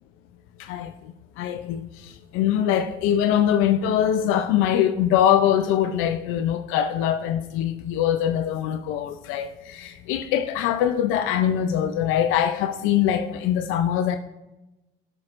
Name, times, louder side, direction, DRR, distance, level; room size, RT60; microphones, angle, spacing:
voice 1, 0.6-0.9 1.4-14.2, left 10 dB, 85° left, 0.5 m, -23 dB
12.5 x 6.3 x 2.5 m
cardioid pair, 110°, 20 cm